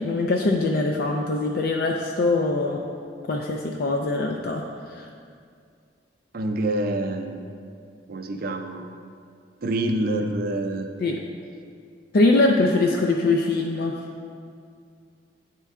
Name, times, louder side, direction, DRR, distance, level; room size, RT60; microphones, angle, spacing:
voice 1, 0.0-2.8 3.3-4.6 4.9-5.1 11.0-11.2 12.1-13.9, left 2 dB, 55° left, 1 dB, 0.4 m, -22 dB
voice 2, 6.3-7.4 8.1-8.9 9.6-10.9, right 1 dB, 50° right, 4 dB, 0.5 m, -26 dB
9.0 x 4.4 x 3.6 m, 2.3 s
head